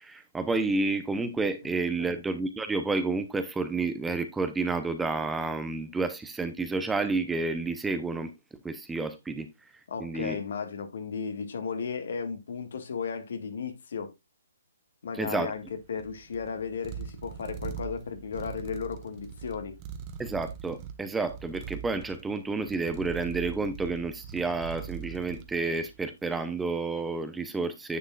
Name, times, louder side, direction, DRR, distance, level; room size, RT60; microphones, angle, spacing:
voice 1, 0.0-8.3 8.6-9.5 10.0-10.4 15.1-15.5 20.2-28.0, right 3 dB, 5° right, 0.7 m, -30 dB
voice 2, 9.9-14.1 15.0-15.6 15.9-19.8, left 6 dB, 60° left, 1.7 m, -35 dB
sound 1, 15.5-26.1, right 8 dB, 30° right, 1.1 m, -42 dB
10.0 x 7.2 x 2.4 m
hypercardioid pair, 145°, 0 cm